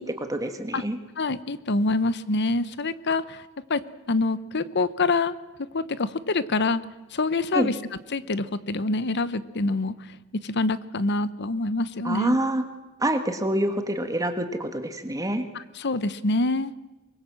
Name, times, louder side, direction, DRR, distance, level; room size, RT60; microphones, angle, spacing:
voice 1, 0.0-1.0 7.5-7.7 12.0-12.6 13.0-15.4, right 1 dB, 15° right, 7 dB, 1.7 m, -26 dB
voice 2, 1.2-3.4 3.7-6.8 7.1-7.7 8.1-9.9 10.3-12.4 15.5-16.7, left 3 dB, 50° left, 15 dB, 0.9 m, -26 dB
24.5 x 21.5 x 7.6 m, 1.1 s
head